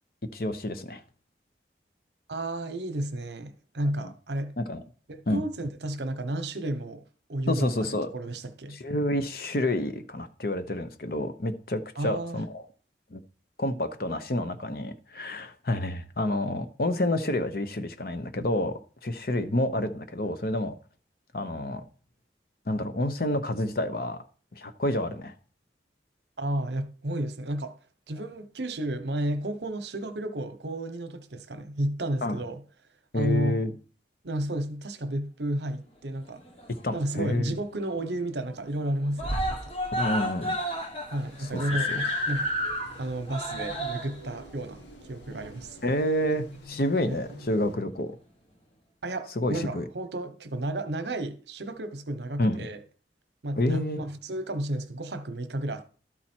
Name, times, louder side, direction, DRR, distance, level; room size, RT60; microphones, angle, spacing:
voice 1, 0.3-1.0 4.0-4.1 4.6-4.8 5.3-5.4 7.5-8.1 8.7-12.6 13.1-13.2 13.6-20.7 21.3-21.8 22.7-24.2 24.5-25.3 32.2-32.4 33.1-33.7 36.7-37.5 40.0-40.6 41.9-42.0 45.8-48.1 49.4-49.8 52.4-52.6 53.6-54.0, left 1 dB, 55° left, 0.8 m, -29 dB
voice 2, 2.3-4.5 5.1-7.0 7.3-8.8 12.0-12.4 26.4-27.7 28.1-32.6 33.1-33.6 34.2-36.4 36.9-39.7 41.1-42.5 43.0-45.8 47.0-47.2 49.0-52.8 53.4-55.9, right 1 dB, 75° right, 0.9 m, -32 dB
Screaming, 36.3-37.2 37.5-37.6 38.0-38.1 38.4-38.8 39.2-46.0 46.8-46.9, equal, 35° left, 1.4 m, -32 dB
sound 1, 41.2-47.8, left 1 dB, 80° left, 1.4 m, -50 dB
12.5 x 4.2 x 4.4 m
head